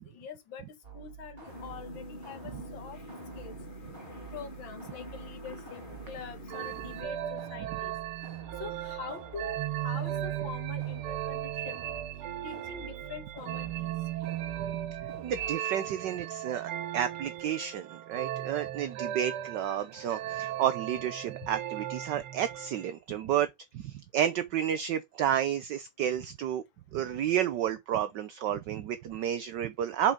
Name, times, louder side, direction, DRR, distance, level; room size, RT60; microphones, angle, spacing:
voice 1, 0.1-0.7 0.9-3.0 3.4-3.6 4.3-7.9 8.6-11.8 12.4-13.9, left 7 dB, 65° left, 2.1 m, -44 dB
sound 1, 0.8-15.5, right 7 dB, 25° right, 3.1 m, -47 dB
sound 2, 1.4-7.0, left 2 dB, 20° left, 3.2 m, -46 dB
sound 3, 6.5-22.9, right 12 dB, 90° right, 1.7 m, -37 dB
voice 2, 15.2-23.5 23.7-26.6 26.9-30.1, right 10 dB, 65° right, 1.3 m, -31 dB
7.0 x 5.8 x 5.0 m
omnidirectional pair, 2.3 m